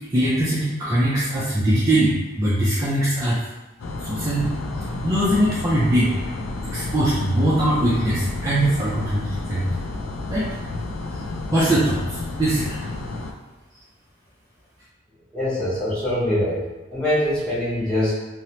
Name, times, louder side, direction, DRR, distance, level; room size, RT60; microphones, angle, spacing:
voice 1, 0.1-3.4 4.0-4.5 5.0-6.1 6.7-9.6 10.3-10.5 11.5-12.8, right 1 dB, 15° right, -9 dB, 0.3 m, -21 dB
sound 1, 3.8-13.3, left 2 dB, 75° left, 0.3 m, -31 dB
voice 2, 15.3-16.6 16.9-18.1, left 1 dB, 5° left, -11 dB, 0.9 m, -23 dB
2.8 x 2.0 x 2.9 m, 1.1 s
head